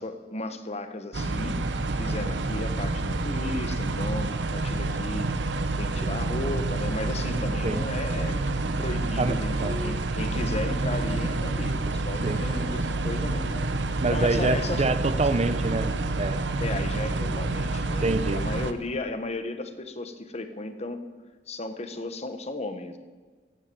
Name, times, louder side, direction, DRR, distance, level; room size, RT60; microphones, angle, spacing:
voice 1, 0.0-1.6 1.9-5.4 5.8-8.4 8.8-13.5 14.1-14.9 16.6-21.1 21.5-23.0, left 2 dB, 35° left, 9 dB, 1.1 m, -34 dB
sound 1, 1.1-18.7, right 2 dB, 70° right, 0.9 m, -28 dB
Breathing, 8.1-8.8 9.4-11.8 12.1-12.9 13.3-13.9 14.2-14.8 15.4-15.9, left 2 dB, 65° left, 4.0 m, -42 dB
voice 2, 14.0-15.9 16.2-16.4 18.0-18.4, right 3 dB, 35° right, 11 dB, 0.6 m, -25 dB
15.5 x 9.1 x 7.0 m, 1.4 s
head